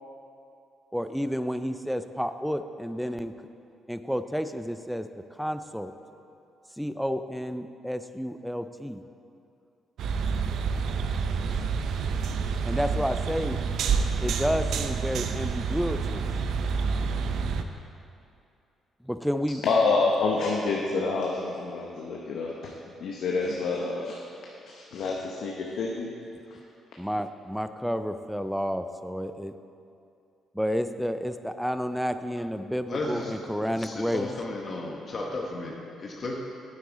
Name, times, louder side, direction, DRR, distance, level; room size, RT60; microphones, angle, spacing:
voice 1, 0.9-3.3 3.9-5.9 6.8-9.0 12.6-13.6 14.2-16.2 19.0-19.6 27.0-29.5 30.5-34.3, equal, ahead, 10 dB, 0.4 m, -30 dB
sound 1, 10.0-17.6, right 5 dB, 75° right, 0.5 m, -28 dB
voice 2, 19.6-22.7 23.0-24.2 24.7-26.1, left 3 dB, 75° left, -2 dB, 0.9 m, -27 dB
voice 3, 32.9-33.3 33.8-36.4, left 2 dB, 45° left, -1 dB, 1.0 m, -34 dB
9.7 x 8.4 x 4.1 m, 2.6 s
cardioid pair, 90°, 0 cm